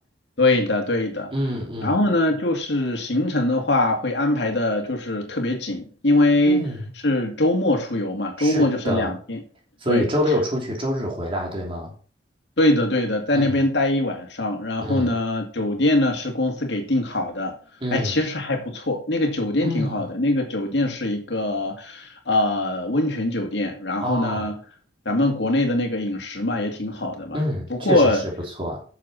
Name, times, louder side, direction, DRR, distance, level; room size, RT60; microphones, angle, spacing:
voice 1, 0.4-1.3 1.8-6.7 7.0-9.4 9.9-10.0 12.6-17.5 17.9-24.6 25.1-27.4 27.7-28.2, left 2 dB, 65° left, 2.3 m, -22 dB
voice 2, 1.3-2.0 6.5-6.9 8.4-9.1 9.8-11.9 13.3-13.5 14.8-15.2 17.8-18.2 19.6-20.0 24.0-24.5 27.3-28.3 28.6-28.8, equal, 30° right, 3.1 m, -26 dB
9.3 x 6.9 x 4.2 m
head